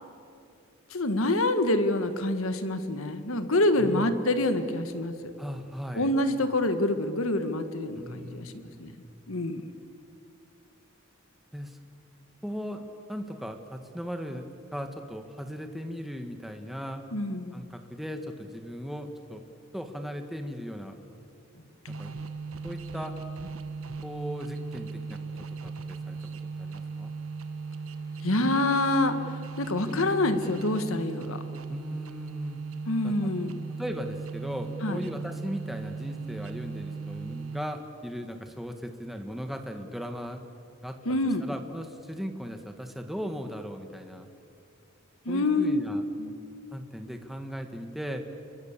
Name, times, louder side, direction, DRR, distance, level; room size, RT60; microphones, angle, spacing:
voice 1, 0.9-5.1 5.9-8.9 9.3-9.6 17.1-17.6 28.2-31.4 32.9-33.6 34.8-35.0 41.0-41.4 45.2-45.8 46.2-46.3, left 2 dB, 80° left, 9 dB, 1.7 m, -26 dB
voice 2, 3.8-4.1 5.4-6.1 7.9-8.9 11.5-11.8 12.4-17.0 17.5-19.5 19.7-21.0 21.9-22.1 22.6-23.1 24.0-25.2 25.6-26.3 26.6-27.1 31.7-32.6 33.0-33.3 33.7-40.4 40.8-41.0 41.4-44.3 45.3-46.0 46.7-48.2, equal, ahead, 5 dB, 1.6 m, -37 dB
sound 1, 21.9-38.0, right 4 dB, 80° right, 1.4 m, -38 dB
29.0 x 22.5 x 7.5 m, 2.5 s
head